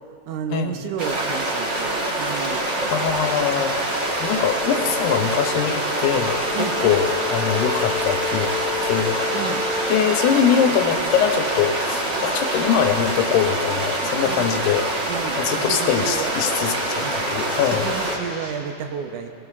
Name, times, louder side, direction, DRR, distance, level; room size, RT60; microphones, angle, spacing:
voice 1, 0.3-2.7 6.5-6.8 9.3-9.6 14.3-14.5 15.1-16.3 17.0-17.2 17.6-19.3, right 8 dB, 80° right, 5 dB, 2.3 m, -31 dB
sound 1, 1.0-18.2, right 1 dB, 55° right, 0.8 m, -25 dB
sound 2, 2.4-18.5, equal, 20° right, 3.8 m, -43 dB
voice 2, 2.9-8.5 8.8-9.2 9.9-14.9 15.4-17.9, left 8 dB, 80° left, 5 dB, 2.3 m, -23 dB
sound 3, 3.9-10.1, left 6 dB, 20° left, 2.0 m, -32 dB
21.5 x 17.5 x 2.4 m, 2.7 s
omnidirectional pair, 3.6 m